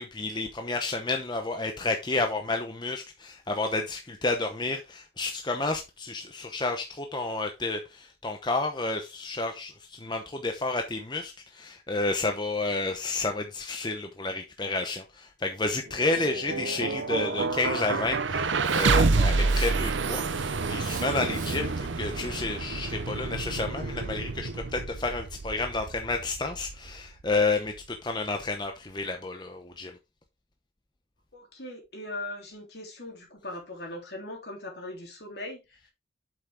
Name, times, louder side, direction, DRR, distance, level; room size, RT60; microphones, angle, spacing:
voice 1, 0.0-29.9, left 3 dB, 25° left, 0.9 m, -31 dB
sound 1, 15.9-27.9, right 3 dB, 85° right, 0.7 m, -29 dB
Hiss, 18.6-19.1 19.5-20.1 20.8-21.8, right 8 dB, 45° right, 1.6 m, -42 dB
voice 2, 31.3-35.9, left 1 dB, 60° left, 3.5 m, -40 dB
8.1 x 6.5 x 3.6 m
head